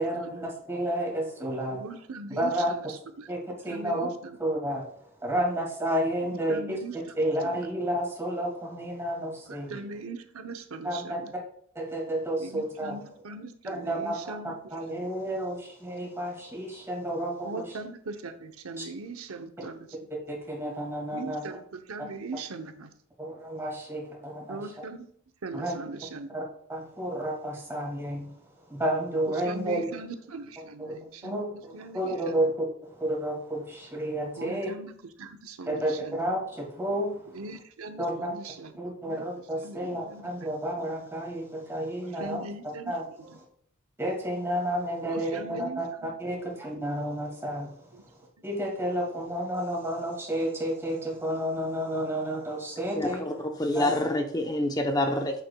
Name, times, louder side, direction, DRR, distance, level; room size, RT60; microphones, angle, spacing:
voice 1, 0.0-1.8 2.4-2.7 3.3-4.1 4.4-4.8 5.2-6.8 7.1-9.8 10.8-11.2 11.7-13.0 13.6-17.8 18.8-18.9 20.3-21.5 23.2-24.7 25.5-25.7 26.3-26.4 26.7-28.3 28.7-30.0 30.6-30.9 31.2-32.7 33.0-34.7 35.7-37.1 38.0-38.3 38.7-43.3 44.0-47.7 48.4-53.2 53.7-53.9, right 1 dB, 10° right, -3 dB, 2.2 m, -31 dB
voice 2, 1.7-3.3 3.7-4.4 6.5-7.0 7.5-7.7 9.5-11.3 12.4-14.5 14.9-15.1 17.4-19.9 21.1-22.9 24.5-25.1 25.4-26.3 29.4-32.4 34.4-34.9 35.2-36.2 37.3-38.7 39.0-39.2 39.6-40.5 42.1-42.9 43.3-43.4 45.0-46.1 47.9-48.0, right 3 dB, 70° right, 7 dB, 0.8 m, -40 dB
voice 3, 52.9-53.3 53.6-55.4, left 1 dB, 15° left, 4 dB, 0.7 m, -27 dB
8.4 x 6.8 x 2.3 m, 0.62 s
head